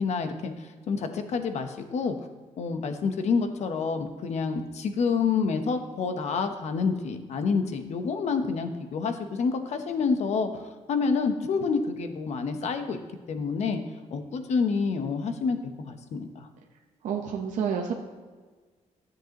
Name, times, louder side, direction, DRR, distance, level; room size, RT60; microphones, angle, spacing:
voice 1, 0.0-2.2 2.6-13.0 13.3-13.8 14.1-15.6 15.8-16.5, left 5 dB, 60° left, 8 dB, 0.9 m, -28 dB
voice 2, 17.0-17.9, right 7 dB, 80° right, 1 dB, 0.9 m, -29 dB
13.0 x 7.7 x 3.0 m, 1.4 s
cardioid pair, 135°, 13 cm